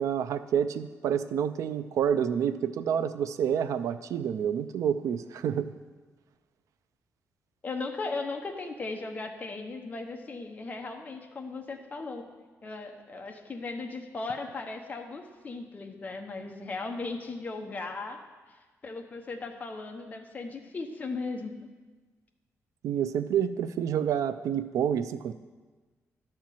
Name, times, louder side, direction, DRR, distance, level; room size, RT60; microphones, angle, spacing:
voice 1, 0.0-5.7 22.8-25.3, right 8 dB, 85° right, 12 dB, 0.5 m, -28 dB
voice 2, 7.6-12.2 12.6-18.2 18.5-21.5, left 3 dB, 30° left, 3 dB, 0.9 m, -37 dB
11.5 x 4.4 x 7.5 m, 1.3 s
wide cardioid pair, 150°, 5 cm